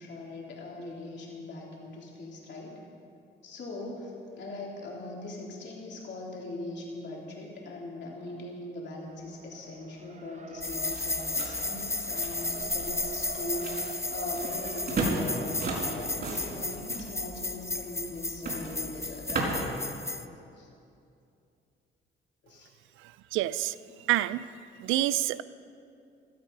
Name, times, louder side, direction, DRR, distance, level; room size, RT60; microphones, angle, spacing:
voice 1, 0.0-2.8 3.4-19.9 20.6-20.7 22.4-22.7 23.9-24.1, left 2 dB, 65° left, -3 dB, 3.5 m, -40 dB
Race car auto racing, 9.0-18.1, right 4 dB, 35° right, 1.0 m, -46 dB
sound 1, 10.6-20.2, left 3 dB, 15° left, 0.6 m, -34 dB
sound 2, 10.6-19.8, right 2 dB, 55° right, 4.5 m, -36 dB
voice 2, 23.3-23.7 24.1-24.4 24.8-25.4, right 15 dB, 90° right, 16 dB, 0.5 m, -27 dB
17.0 x 12.5 x 5.3 m, 2.6 s
cardioid pair, 90°, 20 cm